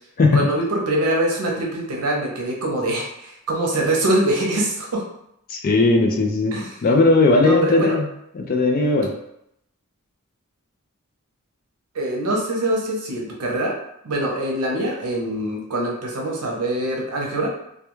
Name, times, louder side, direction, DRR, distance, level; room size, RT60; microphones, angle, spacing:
voice 1, 0.3-5.0 6.5-6.7 7.4-7.9 11.9-13.7 14.0-17.5, right 1 dB, 80° right, -1 dB, 0.7 m, -24 dB
voice 2, 5.5-6.5 6.8-8.1 8.3-9.1, left 2 dB, 40° left, 2 dB, 0.3 m, -17 dB
2.2 x 2.2 x 3.0 m, 0.77 s
head